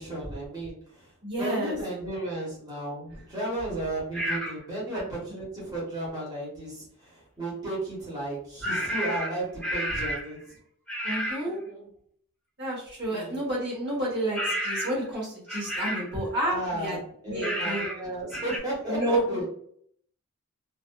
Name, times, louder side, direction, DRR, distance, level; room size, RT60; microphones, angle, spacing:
voice 1, 0.0-10.6 11.4-11.9 13.1-13.4 16.4-17.0 17.2-19.4, right 1 dB, 20° right, -6 dB, 1.0 m, -34 dB
voice 2, 1.2-1.8 4.9-5.0 11.0-11.6 12.6-17.0 17.3-17.8 18.9-19.4, right 1 dB, 50° right, -5 dB, 1.0 m, -30 dB
sound 1, 4.1-4.6 8.6-10.3 10.9-11.5 14.3-15.1 15.5-16.1 17.4-18.0 18.3-18.6, equal, 5° left, 0.5 m, -31 dB
2.5 x 2.5 x 2.2 m, 0.64 s
head